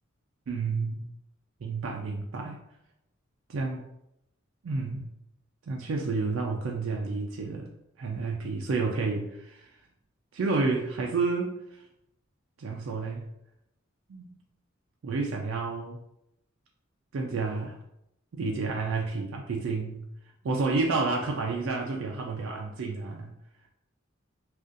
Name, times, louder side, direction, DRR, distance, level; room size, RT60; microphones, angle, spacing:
voice 1, 0.5-1.0 1.6-2.6 3.5-3.8 4.6-5.1 5.7-7.7 8.0-9.7 10.3-11.8 12.6-13.2 14.1-14.4 15.0-16.0 17.1-17.8 18.3-20.0 20.4-23.3, right 3 dB, 65° right, 0 dB, 0.4 m, -30 dB
2.5 x 2.4 x 3.7 m, 0.82 s
head